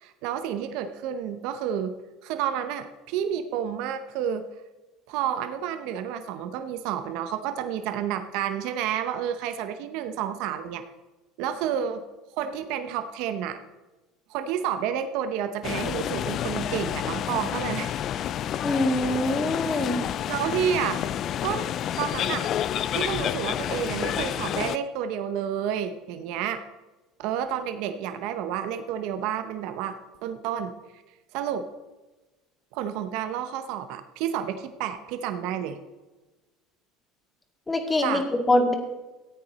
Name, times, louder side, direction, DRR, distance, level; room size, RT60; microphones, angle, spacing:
voice 1, 0.0-1.9 2.2-4.4 5.1-10.8 11.4-12.0 12.4-13.6 14.3-17.9 20.3-21.0 21.4-21.7 22.0-22.5 22.9-26.6 27.2-30.0 30.2-30.7 31.3-31.7 32.7-35.8 38.0-38.2, right 9 dB, 70° right, 9 dB, 0.8 m, -30 dB
sound 1, 15.6-24.8, left 10 dB, 50° left, 0.4 m, -29 dB
voice 2, 18.6-20.0 37.7-38.7, left 1 dB, 15° left, 3 dB, 2.1 m, -24 dB
14.0 x 8.8 x 4.2 m, 1.2 s
supercardioid pair, 105°, 0 cm